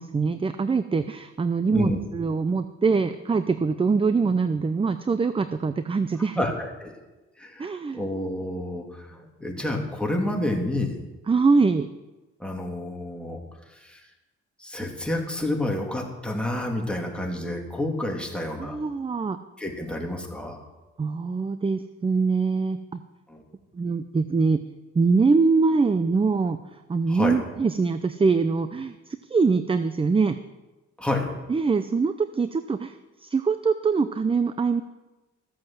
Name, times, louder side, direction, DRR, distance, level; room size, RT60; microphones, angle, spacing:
voice 1, 0.0-6.4 7.6-8.1 11.3-11.9 18.6-19.4 21.0-23.0 23.7-24.6 25.0-26.6 26.9-30.4 31.5-32.9 33.2-34.8, right 4 dB, 20° right, 11 dB, 0.5 m, -23 dB
voice 2, 6.4-6.9 7.4-11.0 12.4-13.4 13.7-14.0 14.6-18.8 19.6-20.6 23.3-23.4 27.1-27.4 31.0-31.3, left 1 dB, 5° left, 0 dB, 2.7 m, -29 dB
14.0 x 7.5 x 7.5 m, 1.1 s
cardioid pair, 90°, 30 cm